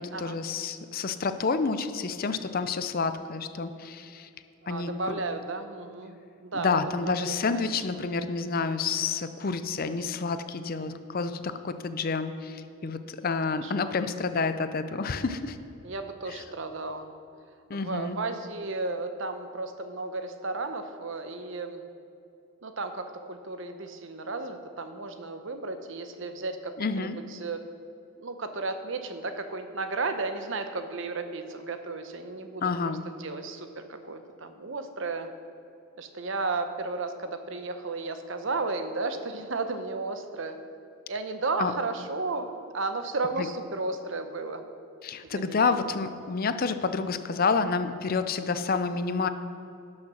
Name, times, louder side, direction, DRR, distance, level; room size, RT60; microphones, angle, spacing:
voice 1, 0.0-4.3 4.7-5.2 6.5-15.6 16.3-16.4 17.7-18.2 26.8-27.2 32.6-33.0 41.6-41.7 43.4-43.5 45.0-49.3, left 4 dB, 45° left, 10 dB, 0.5 m, -29 dB
voice 2, 4.6-6.8 7.1-7.4 13.6-13.9 15.8-17.1 17.8-21.8 22.6-27.6 28.2-32.7 33.0-35.3 36.0-40.6 41.1-42.5 42.7-44.6 45.3-45.7, right 3 dB, 60° right, 8 dB, 0.8 m, -34 dB
11.5 x 6.5 x 6.2 m, 2.7 s
head